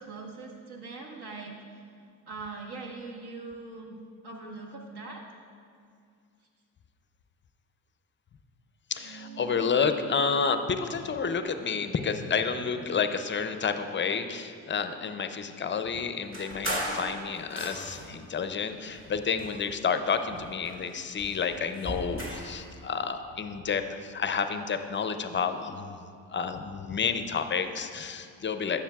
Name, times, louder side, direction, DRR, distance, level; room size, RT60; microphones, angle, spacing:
voice 1, 0.0-1.9 2.3-4.0 4.2-5.3, right 3 dB, 60° right, 0 dB, 1.5 m, -41 dB
voice 2, 8.9-28.8, left 6 dB, 25° left, 9 dB, 0.5 m, -30 dB
sound 1, 8.9-13.7, right 7 dB, 90° right, 1.8 m, -48 dB
sound 2, 16.3-18.2 18.9-20.0 20.4-22.6, right 1 dB, 30° right, 1.8 m, -37 dB
12.0 x 6.7 x 2.3 m, 2.3 s
supercardioid pair, 65°, 44 cm